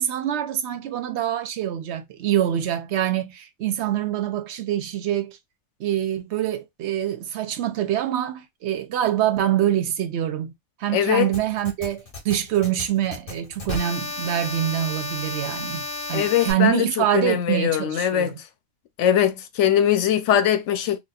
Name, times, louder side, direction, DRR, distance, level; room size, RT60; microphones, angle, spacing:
voice 1, 0.0-5.4 5.8-10.5 10.8-18.3, right 11 dB, 75° right, 0.8 m, -25 dB
voice 2, 10.9-11.3 16.1-16.9 17.1-18.3 19.0-21.0, left 10 dB, 90° left, 0.9 m, -21 dB
sound 1, 11.3-16.5, left 2 dB, 45° left, 1.3 m, -33 dB
4.1 x 2.3 x 2.3 m
omnidirectional pair, 1.2 m